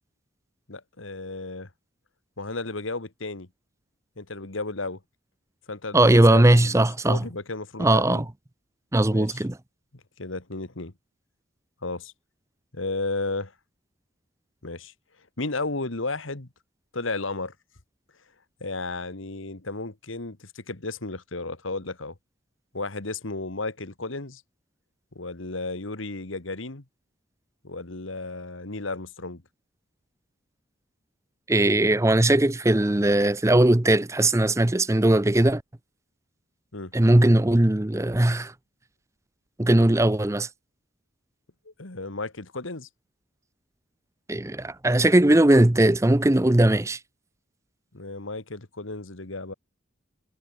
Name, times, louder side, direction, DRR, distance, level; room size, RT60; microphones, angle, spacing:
voice 1, 0.7-1.7 2.4-3.5 4.2-5.0 5.7-8.2 9.1-9.4 10.2-10.9 11.8-12.1 12.7-13.5 14.6-14.9 15.4-16.5 16.9-17.5 18.6-22.1 22.7-24.4 25.2-26.8 27.6-29.4 36.7-36.9 41.7-42.9 47.9-49.5, left 3 dB, 80° left, 2.0 m, -33 dB
voice 2, 5.9-7.2 7.8-8.2 8.9-9.6 31.5-35.6 36.9-38.5 39.6-40.5 44.3-47.0, right 1 dB, 15° right, 0.6 m, -19 dB
head